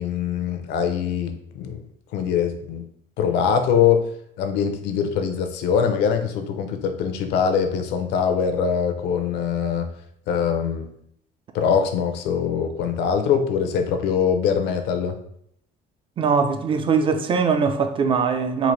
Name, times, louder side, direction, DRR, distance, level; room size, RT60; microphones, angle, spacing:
voice 1, 0.0-1.8 2.1-2.8 3.2-4.0 4.4-9.9 10.3-10.9 11.5-15.2, left 7 dB, 85° left, 0.6 m, -23 dB
voice 2, 16.2-18.7, right 5 dB, 30° right, 0.4 m, -21 dB
4.0 x 2.5 x 3.2 m
cardioid pair, 110°, 17 cm